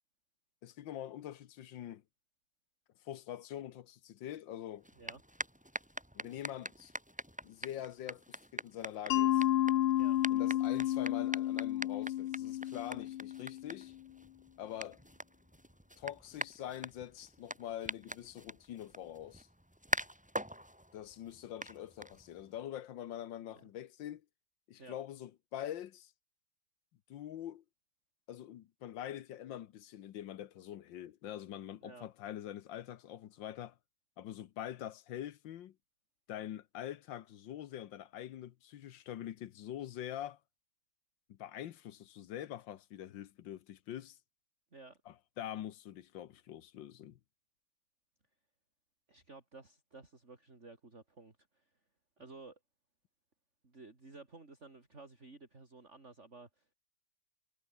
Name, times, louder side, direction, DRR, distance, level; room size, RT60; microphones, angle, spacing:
voice 1, 0.6-2.0 3.0-4.9 6.1-6.9 7.4-9.4 10.3-13.9 14.6-15.0 16.0-19.5 20.9-24.2 24.7-26.1 27.1-27.6 28.3-33.8 34.2-35.7 36.3-40.4 41.3-44.2 45.1-47.2, left 11 dB, 65° left, 1.5 m, -44 dB
sound 1, 4.8-22.6, equal, 5° right, 3.8 m, -44 dB
Mallet percussion, 9.1-13.9, left 13 dB, 85° left, 1.8 m, -31 dB
voice 2, 49.1-51.7 52.2-52.6 53.6-56.7, right 3 dB, 30° right, 3.9 m, -54 dB
omnidirectional pair, 2.3 m